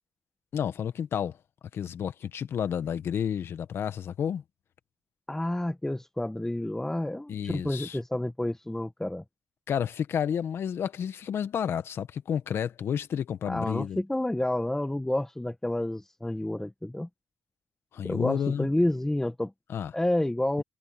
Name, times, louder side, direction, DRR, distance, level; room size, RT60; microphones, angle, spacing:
voice 1, 0.5-1.4 1.7-4.4 7.3-8.0 9.7-14.0 17.9-18.7 19.7-19.9, left 8 dB, 70° left, 1.7 m, -31 dB
voice 2, 5.3-9.2 13.5-17.1 18.0-19.5 19.9-20.6, left 1 dB, 10° left, 1.4 m, -29 dB
cardioid pair, 65°, 4 cm